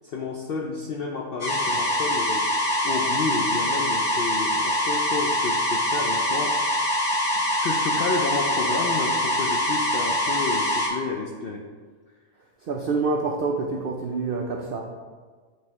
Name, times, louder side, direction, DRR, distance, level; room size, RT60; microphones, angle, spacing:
voice 1, 0.0-2.5 2.8-6.8 7.4-11.7, left 4 dB, 75° left, 1 dB, 0.5 m, -31 dB
sound 1, 1.4-10.9, left 1 dB, 40° left, 1.4 m, -24 dB
voice 2, 12.6-14.8, right 3 dB, 75° right, 1 dB, 0.5 m, -27 dB
8.5 x 3.8 x 2.9 m, 1.5 s
omnidirectional pair, 1.5 m